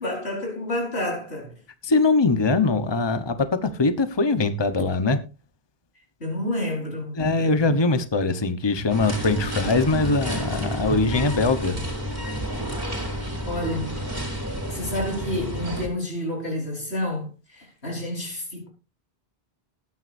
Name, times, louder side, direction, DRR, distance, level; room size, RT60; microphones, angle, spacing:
voice 1, 0.0-1.5 6.2-7.7 13.5-14.0 14.7-18.7, left 1 dB, 90° left, 4.9 m, -29 dB
voice 2, 1.8-3.4 3.6-5.2 7.2-11.8, left 3 dB, 25° left, 1.1 m, -22 dB
sound 1, 8.9-15.9, equal, 15° right, 3.8 m, -30 dB
20.5 x 9.5 x 2.6 m
omnidirectional pair, 1.1 m